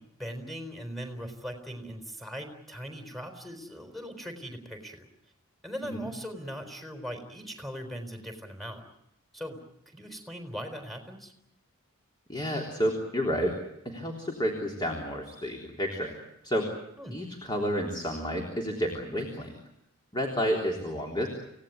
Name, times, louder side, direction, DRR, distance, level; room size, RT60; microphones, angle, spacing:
voice 1, 0.0-5.1 5.6-8.9 9.3-9.6 9.9-11.3 17.0-17.2, equal, ahead, 6 dB, 4.1 m, -40 dB
voice 2, 12.3-13.6 13.9-16.1 16.4-16.7 17.1-19.5 20.1-21.3, equal, 20° left, 1 dB, 3.5 m, -30 dB
29.0 x 17.5 x 9.4 m, 0.83 s
head